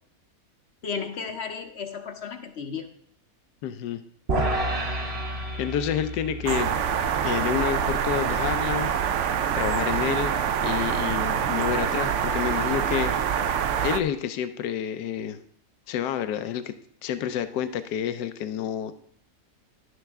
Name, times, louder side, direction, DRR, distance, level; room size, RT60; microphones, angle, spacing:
voice 1, 0.8-2.9, left 6 dB, 55° left, 6 dB, 0.8 m, -34 dB
voice 2, 3.6-4.0 5.6-8.9 9.5-10.3 10.6-13.5 13.8-15.4 15.9-16.7 17.0-18.9, left 9 dB, 85° left, 11 dB, 1.2 m, -29 dB
sound 1, 4.3-10.7, right 1 dB, 45° right, 1.2 m, -32 dB
sound 2, 6.5-14.0, right 8 dB, 70° right, 0.7 m, -25 dB
11.0 x 7.9 x 3.5 m, 0.68 s
omnidirectional pair, 1.7 m